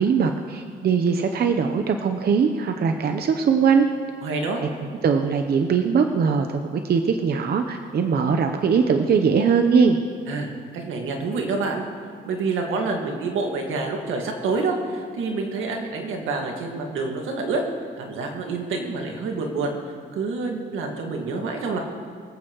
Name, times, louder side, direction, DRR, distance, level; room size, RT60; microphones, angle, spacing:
voice 1, 0.0-3.9 5.0-10.0, right 6 dB, 55° right, 6 dB, 0.8 m, -21 dB
voice 2, 4.2-4.6 10.3-11.8 12.2-17.6 18.0-19.7 20.2-21.8, right 3 dB, 80° right, 2 dB, 1.9 m, -27 dB
25.0 x 8.4 x 3.1 m, 2.4 s
cardioid pair, 90°, 20 cm